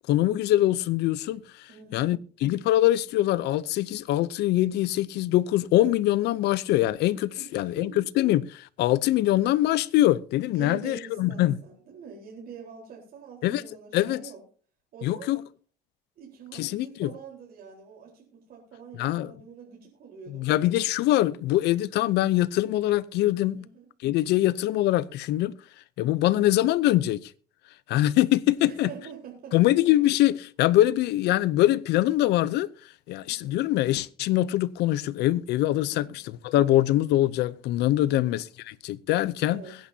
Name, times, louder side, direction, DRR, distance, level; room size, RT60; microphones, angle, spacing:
voice 1, 0.1-1.4 1.9-11.6 13.4-13.6 13.9-14.2 15.0-15.4 16.5-17.1 19.0-19.3 20.3-23.7 24.0-25.5 26.0-27.3 27.9-28.9 29.5-32.7 33.1-39.6, left 14 dB, 80° left, 0.6 m, -23 dB
voice 2, 1.7-2.2 7.3-8.0 10.5-14.4 14.9-15.3 16.2-20.5 23.5-23.9 28.6-29.7 33.2-33.6 35.8-36.1 38.0-38.4 39.5-39.8, right 6 dB, 60° right, 4.1 m, -45 dB
22.0 x 10.5 x 2.8 m
cardioid pair, 110°, 17 cm